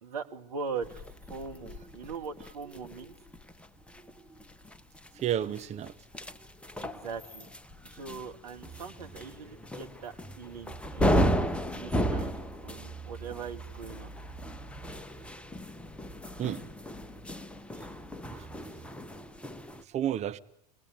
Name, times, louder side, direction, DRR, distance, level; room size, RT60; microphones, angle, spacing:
voice 1, 0.0-3.1 6.8-7.5 7.9-11.4 11.7-14.1, right 5 dB, 70° right, 2.4 m, -41 dB
sound 1, 0.8-19.8, equal, 5° left, 1.2 m, -35 dB
voice 2, 5.1-5.9 16.4-16.6 18.3-18.5 19.9-20.4, right 10 dB, 35° right, 1.2 m, -31 dB
26.5 x 19.0 x 9.4 m
figure-of-eight pair, 80°, 20 cm